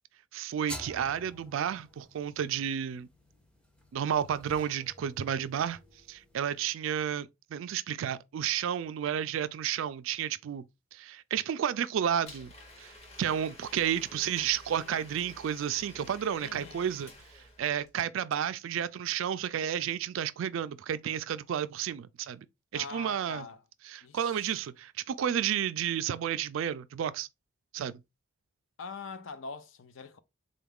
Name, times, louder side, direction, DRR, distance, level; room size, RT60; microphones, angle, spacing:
voice 1, 0.3-3.1 3.9-5.8 6.1-10.6 10.9-12.5 12.8-12.9 13.2-17.1 17.6-22.5 22.7-23.4 23.9-27.3 27.7-28.0, right 9 dB, 70° right, 0.3 m, -31 dB
sound 1, 0.7-6.6, equal, 5° left, 0.5 m, -49 dB
Domestic sounds home sounds, 12.3-17.9, left 2 dB, 30° left, 0.8 m, -51 dB
voice 2, 16.4-16.9 22.7-23.6 24.0-24.5 28.8-30.2, left 4 dB, 65° left, 0.5 m, -43 dB
3.8 x 2.3 x 3.5 m
head